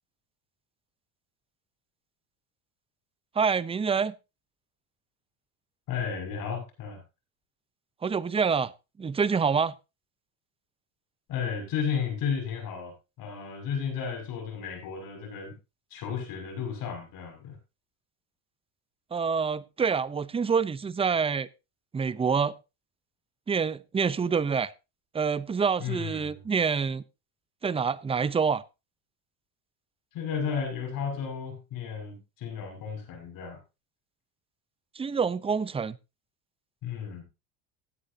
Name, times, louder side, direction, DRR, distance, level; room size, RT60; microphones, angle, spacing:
voice 1, 3.4-4.1 8.0-8.7 9.0-9.7 19.1-21.5 21.9-22.5 23.5-24.7 25.1-27.0 27.6-28.6 34.9-36.0, right 6 dB, 15° right, 0.6 m, -26 dB
voice 2, 5.9-7.0 11.3-15.5 15.9-17.6 25.8-26.4 30.1-33.6 36.8-37.2, left 7 dB, 55° left, 6.5 m, -33 dB
17.0 x 9.8 x 2.8 m
supercardioid pair, 110°, 40 cm